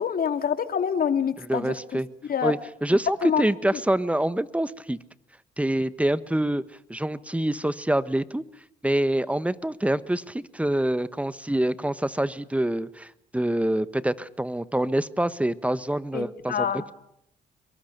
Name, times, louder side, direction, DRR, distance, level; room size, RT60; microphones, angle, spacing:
voice 1, 0.0-2.0 2.3-2.5 3.2-3.4 3.7-3.8 16.1-16.9, left 7 dB, 55° left, 9 dB, 2.5 m, -26 dB
voice 2, 1.5-2.1 2.4-5.0 5.6-6.6 6.9-8.4 8.8-16.9, right 1 dB, 5° right, 15 dB, 1.3 m, -26 dB
25.5 x 22.5 x 6.8 m, 0.76 s
supercardioid pair, 70°, 18 cm